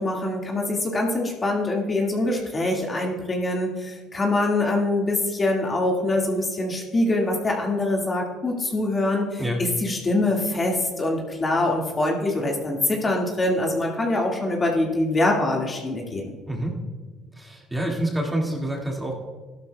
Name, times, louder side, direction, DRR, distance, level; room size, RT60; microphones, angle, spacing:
voice 1, 0.0-16.4, left 2 dB, 25° left, -1 dB, 1.9 m, -24 dB
voice 2, 16.5-16.8 17.4-19.1, right 1 dB, 10° right, -1 dB, 2.0 m, -27 dB
14.5 x 12.0 x 2.3 m, 1.4 s
supercardioid pair, 95°, 0 cm